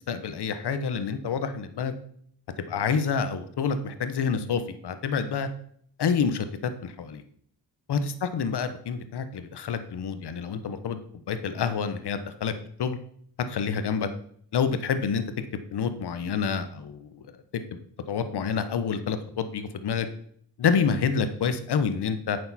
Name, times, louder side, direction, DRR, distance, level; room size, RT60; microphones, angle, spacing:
voice 1, 0.1-1.9 2.7-5.5 6.0-7.2 7.9-11.0 11.3-12.5 12.8-13.0 13.5-14.1 14.5-15.2 15.7-17.3 17.5-17.8 18.1-20.1 20.6-22.4, left 6 dB, 65° left, 10 dB, 1.1 m, -28 dB
8.8 x 6.6 x 4.2 m, 0.63 s
cardioid pair, 65°, 42 cm